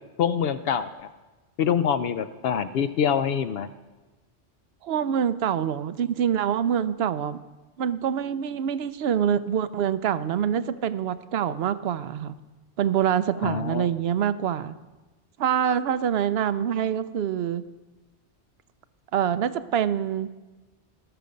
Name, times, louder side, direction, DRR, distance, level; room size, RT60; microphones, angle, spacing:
voice 1, 0.2-1.1 1.6-3.7 13.4-13.9, left 8 dB, 65° left, 12 dB, 0.7 m, -25 dB
voice 2, 4.8-7.4 7.8-12.3 12.8-14.8 15.4-17.6 19.1-20.3, right 9 dB, 65° right, 14 dB, 0.8 m, -25 dB
17.0 x 6.8 x 5.1 m, 1.2 s
omnidirectional pair, 1.2 m